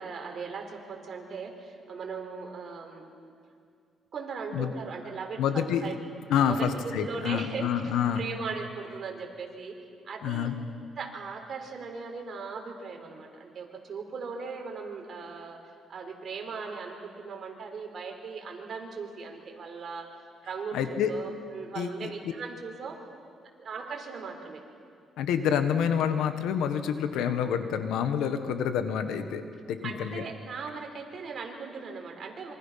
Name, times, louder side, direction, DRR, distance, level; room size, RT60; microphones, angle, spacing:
voice 1, 0.0-3.1 4.1-5.9 6.4-9.8 10.0-10.5 11.0-15.6 15.9-20.1 20.4-23.0 23.6-24.6 29.8-32.5, right 5 dB, 55° right, 2 dB, 4.2 m, -38 dB
voice 2, 5.4-5.9 6.3-8.2 10.2-10.5 20.7-21.1 21.7-22.1 25.2-29.4 29.7-30.2, left 8 dB, 85° left, 9 dB, 1.5 m, -28 dB
26.5 x 24.0 x 5.9 m, 2.3 s
cardioid pair, 90°, 0 cm